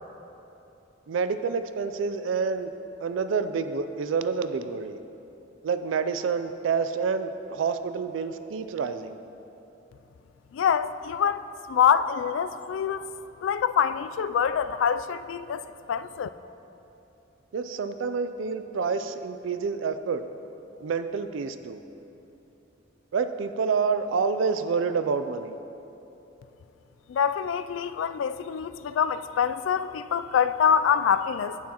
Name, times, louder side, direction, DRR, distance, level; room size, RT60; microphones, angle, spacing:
voice 1, 1.1-2.7 3.0-5.0 5.6-9.2 17.5-20.2 20.8-21.8 23.1-25.6, right 5 dB, 85° right, 10 dB, 0.4 m, -28 dB
voice 2, 10.5-13.0 13.4-16.3 27.1-31.6, left 7 dB, 85° left, 13 dB, 0.3 m, -25 dB
11.0 x 9.5 x 2.9 m, 2.9 s
head